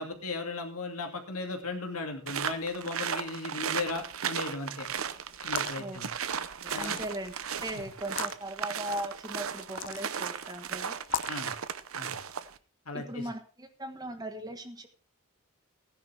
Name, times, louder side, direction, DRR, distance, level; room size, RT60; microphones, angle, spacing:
voice 1, 0.0-4.9 5.4-6.1 6.7-7.0 11.3-11.5 12.0-12.2 12.9-13.3, left 3 dB, 80° left, 4 dB, 2.5 m, -36 dB
sound 1, 2.3-12.6, right 7 dB, 70° right, 0.8 m, -35 dB
sound 2, 5.3-5.8 6.7-7.3 8.0-8.3 9.6-10.1 11.0-11.4, left 8 dB, 55° left, 0.6 m, -36 dB
voice 2, 6.6-7.3 7.6-11.0 12.9-14.9, right 1 dB, 15° right, 7 dB, 1.3 m, -38 dB
16.0 x 10.5 x 3.5 m, 0.37 s
head